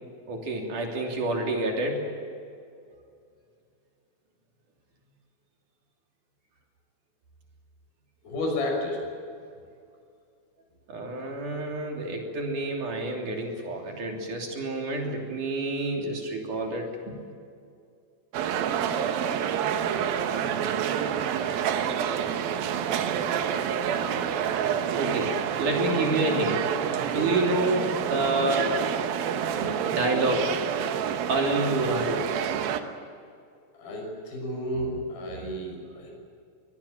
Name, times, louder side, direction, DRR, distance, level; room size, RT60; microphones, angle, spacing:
voice 1, 0.3-2.1 10.9-17.1 25.0-26.7 27.0-28.9 29.6-30.6 31.3-32.3, right 2 dB, 60° right, 1 dB, 4.5 m, -28 dB
voice 2, 8.2-9.0 27.1-27.5 33.8-36.1, left 1 dB, 80° left, 1 dB, 8.1 m, -31 dB
sound 1, 18.3-32.8, right 8 dB, 80° right, 3.0 m, -28 dB
23.5 x 19.5 x 8.7 m, 2.4 s
omnidirectional pair, 4.2 m